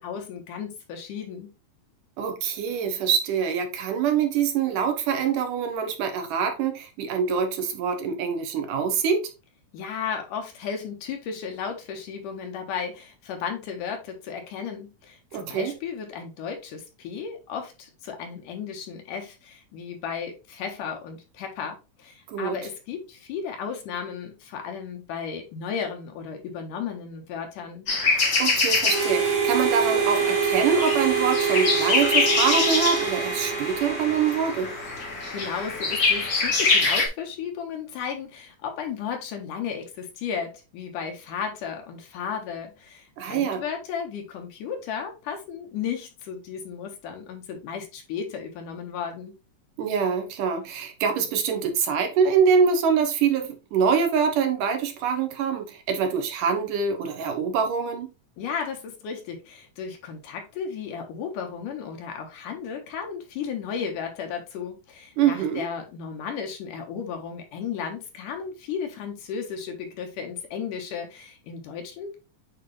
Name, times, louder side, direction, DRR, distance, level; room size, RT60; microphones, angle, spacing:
voice 1, 0.0-1.5 9.7-27.9 35.3-49.3 58.4-72.2, left 6 dB, 80° left, 3.0 m, -34 dB
voice 2, 2.2-9.3 15.3-15.7 22.3-22.6 28.4-34.7 43.2-43.6 49.8-58.1 65.2-65.7, right 6 dB, 80° right, 2.7 m, -24 dB
sound 1, 27.9-37.1, left 3 dB, 35° left, 1.7 m, -25 dB
Harmonica, 28.8-35.2, right 6 dB, 45° right, 0.9 m, -26 dB
8.5 x 3.9 x 3.2 m
omnidirectional pair, 3.7 m